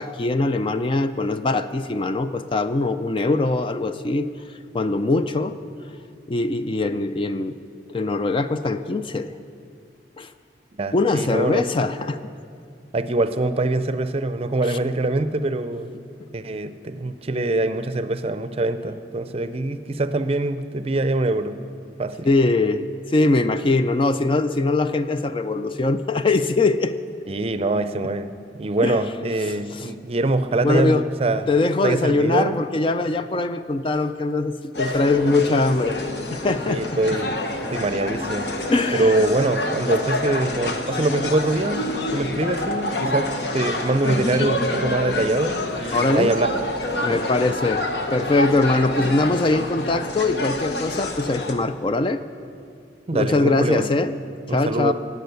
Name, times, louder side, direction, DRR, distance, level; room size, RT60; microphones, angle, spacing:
voice 1, 0.0-4.3 4.7-5.6 6.3-7.6 7.9-9.3 10.2-10.3 10.9-12.2 14.7-14.8 22.2-27.0 28.8-29.0 29.5-29.9 30.6-31.1 31.5-36.0 36.3-37.2 38.7-39.3 45.9-46.3 47.0-47.9 48.1-52.2 53.1-54.1 54.5-54.9, left 3 dB, 30° left, 10 dB, 0.4 m, -22 dB
voice 2, 10.8-11.7 12.9-15.9 16.3-21.6 22.0-22.3 27.3-28.3 28.6-31.5 31.8-32.6 36.7-37.3 37.7-38.5 38.9-41.8 42.1-46.6 47.1-47.2 53.1-53.9 54.5-54.9, right 2 dB, 35° right, 11 dB, 0.5 m, -23 dB
sound 1, 34.7-51.5, left 1 dB, 65° left, 1.2 m, -27 dB
18.5 x 8.3 x 6.9 m, 2.3 s
head